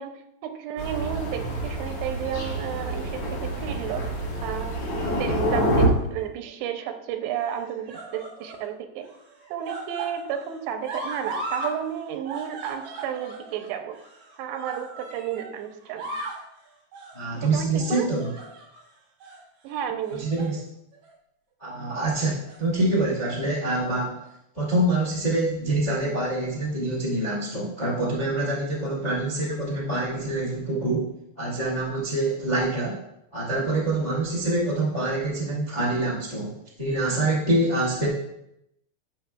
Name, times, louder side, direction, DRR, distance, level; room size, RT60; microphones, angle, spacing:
voice 1, 0.0-4.1 4.4-9.1 9.5-14.0 14.4-16.1 17.4-18.1 19.6-20.3, right 9 dB, 90° right, 7 dB, 2.7 m, -32 dB
Thunder, 0.8-5.9, right 1 dB, 55° left, 1.6 m, -27 dB
sound 1, 5.9-6.5 7.4-8.7 9.0-11.8 12.0-15.5 15.8-16.5 16.9-17.2 17.8-18.8 19.2-19.4 20.1-20.6 20.9-21.1 22.2-22.9 23.7-23.8, right 2 dB, 70° right, 1.4 m, -37 dB
voice 2, 17.1-18.3 20.2-20.6 21.6-24.1 24.5-31.0 31.4-32.9 33.3-38.1, right 2 dB, 80° left, -5 dB, 0.3 m, -25 dB
13.0 x 5.5 x 2.3 m, 0.81 s
omnidirectional pair, 4.8 m